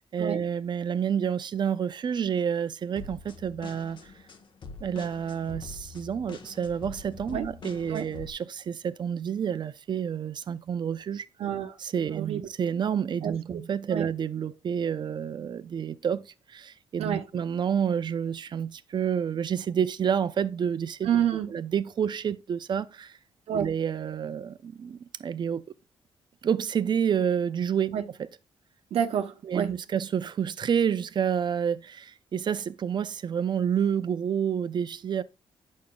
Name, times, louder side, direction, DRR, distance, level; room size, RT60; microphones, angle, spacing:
voice 1, 0.0-4.0 4.8-11.3 11.8-21.1 21.5-23.2 23.5-25.7 26.4-28.3 29.5-35.2, right 8 dB, 50° right, 0.6 m, -29 dB
sound 1, 3.0-8.3, left 4 dB, 55° left, 1.2 m, -44 dB
voice 2, 11.4-11.8 12.1-12.5 13.2-13.4 13.9-14.1 17.0-17.3 21.0-21.5 23.5-23.7 27.9-28.0 28.9-29.8, right 9 dB, 75° right, 1.0 m, -28 dB
8.6 x 6.4 x 2.4 m
cardioid pair, 100°, 10 cm